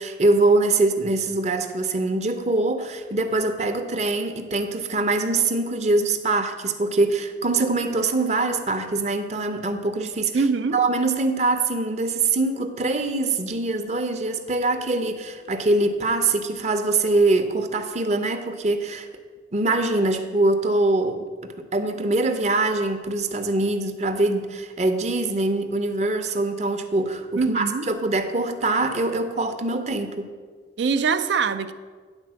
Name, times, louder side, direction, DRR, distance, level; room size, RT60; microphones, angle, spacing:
voice 1, 0.0-10.3 10.7-19.1 19.5-21.2 21.7-30.3, right 2 dB, 40° right, 8 dB, 0.6 m, -23 dB
voice 2, 10.3-10.8 27.4-27.9 30.8-31.7, right 5 dB, 85° right, 11 dB, 0.5 m, -23 dB
9.7 x 4.2 x 7.4 m, 1.5 s
head